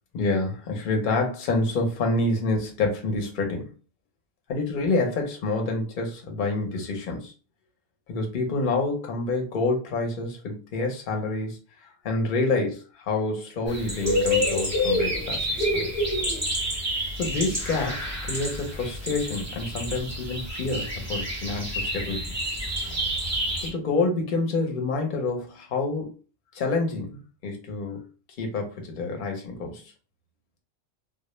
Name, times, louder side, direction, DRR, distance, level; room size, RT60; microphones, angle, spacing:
voice 1, 0.1-3.7 4.5-7.3 8.1-16.1 17.2-22.3 23.6-26.1 26.5-28.0 28.4-29.8, left 3 dB, 50° left, 2 dB, 0.7 m, -28 dB
sound 1, 13.7-23.7, equal, 15° right, 0.6 m, -28 dB
2.1 x 2.0 x 3.0 m, 0.35 s
omnidirectional pair, 1.3 m